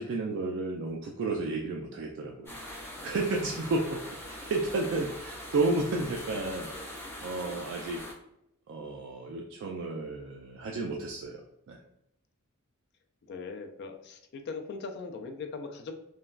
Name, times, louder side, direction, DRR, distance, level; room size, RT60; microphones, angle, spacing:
voice 1, 0.0-8.0 8.7-11.4 11.7-11.8, right 2 dB, 60° right, 0 dB, 0.3 m, -32 dB
sound 1, 2.4-8.1, left 1 dB, 10° left, 0.8 m, -42 dB
voice 2, 13.3-16.0, left 4 dB, 50° left, 5 dB, 0.3 m, -40 dB
3.1 x 2.2 x 2.4 m, 0.81 s
head